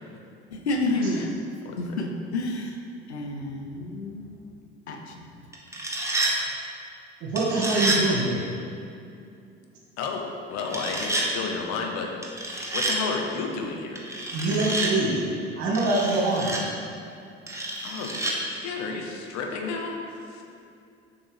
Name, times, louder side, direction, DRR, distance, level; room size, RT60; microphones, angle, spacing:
voice 1, 0.5-1.3 1.8-2.8 3.1-4.3 4.9-5.3, left 2 dB, 90° left, 3 dB, 0.6 m, -29 dB
voice 2, 1.6-2.0 10.0-12.1 12.7-14.0 17.8-20.4, left 4 dB, 55° left, 2 dB, 1.0 m, -32 dB
sound 1, 5.5-6.3 7.4-8.0 10.7-11.3 12.2-13.0 14.0-14.9 15.7-16.6 17.5-18.3, right 2 dB, 10° right, 1.1 m, -28 dB
voice 3, 7.2-8.4 14.3-15.2 15.6-16.5, right 2 dB, 55° right, -3 dB, 1.6 m, -24 dB
7.1 x 5.7 x 3.3 m, 2.5 s
figure-of-eight pair, 60°, 32 cm